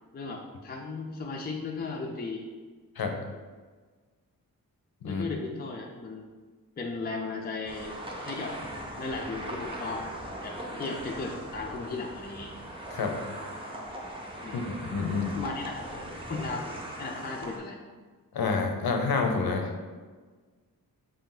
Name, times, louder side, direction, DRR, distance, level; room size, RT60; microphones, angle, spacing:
voice 1, 0.1-2.4 5.0-6.3 6.8-7.9 8.2-8.6 9.0-10.0 10.3-12.5 14.4-14.6 15.3-16.0 16.3-16.7 17.0-17.8, left 3 dB, 25° left, 0 dB, 0.4 m, -36 dB
sound 1, 7.7-17.6, right 1 dB, 15° right, 0.7 m, -39 dB
voice 2, 14.9-15.3 18.3-19.8, left 4 dB, 85° left, 4 dB, 0.7 m, -28 dB
5.0 x 2.7 x 3.8 m, 1.4 s
wide cardioid pair, 115°, 36 cm